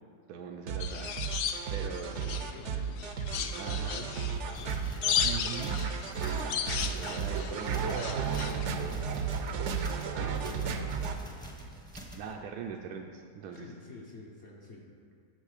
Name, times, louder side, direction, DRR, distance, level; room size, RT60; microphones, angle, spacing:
voice 1, 0.3-1.1 1.7-2.1 3.3-4.2 5.2-5.9 6.9-8.2 11.9-13.6, right 6 dB, 80° right, 2 dB, 1.1 m, -41 dB
sound 1, 0.7-11.2, right 6 dB, 60° right, 0.8 m, -34 dB
sound 2, 0.8-2.6 3.0-8.7, left 8 dB, 85° left, 1.2 m, -35 dB
voice 2, 1.8-4.9 10.2-10.9 13.5-14.9, left 2 dB, 50° left, -3 dB, 1.1 m, -49 dB
sound 3, 4.3-12.3, right 1 dB, 5° left, 0.7 m, -46 dB
8.9 x 5.6 x 6.5 m, 2.2 s
omnidirectional pair, 1.7 m